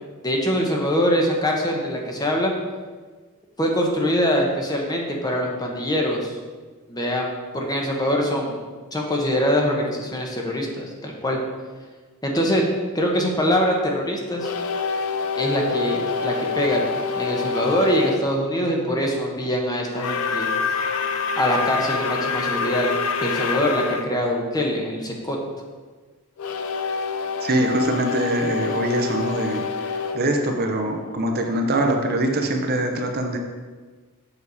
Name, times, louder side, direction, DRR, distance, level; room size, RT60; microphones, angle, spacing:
voice 1, 0.2-2.5 3.6-6.4 6.9-7.3 7.5-8.6 8.9-11.4 12.2-12.6 12.9-14.5 15.4-20.5 21.4-25.4, equal, 20° left, 0 dB, 1.0 m, -23 dB
sound 1, 14.4-18.2 19.9-24.1 26.4-31.2, left 5 dB, 70° left, 0.6 m, -27 dB
voice 2, 27.4-29.6 30.1-33.4, right 1 dB, 45° right, 3 dB, 0.8 m, -23 dB
7.1 x 6.5 x 4.1 m, 1.4 s
head